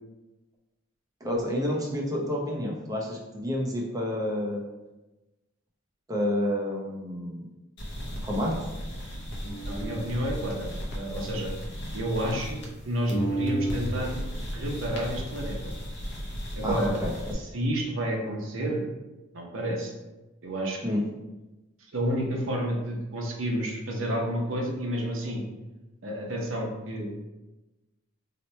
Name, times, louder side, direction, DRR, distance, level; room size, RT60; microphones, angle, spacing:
voice 1, 1.2-4.6 6.1-7.5 8.2-8.6 16.6-17.1 20.8-21.0, left 1 dB, 15° right, -2 dB, 0.6 m, -29 dB
sound 1, 7.8-12.8 13.1-17.3, right 1 dB, 55° left, 0.6 m, -34 dB
voice 2, 9.6-11.5 11.9-12.6 12.8-14.1 14.5-15.7 16.6-17.0 17.3-18.8 19.3-19.9 20.4-21.0 21.9-25.4 26.0-27.1, right 1 dB, 70° right, 0 dB, 0.7 m, -30 dB
2.9 x 2.1 x 4.1 m, 1.1 s
head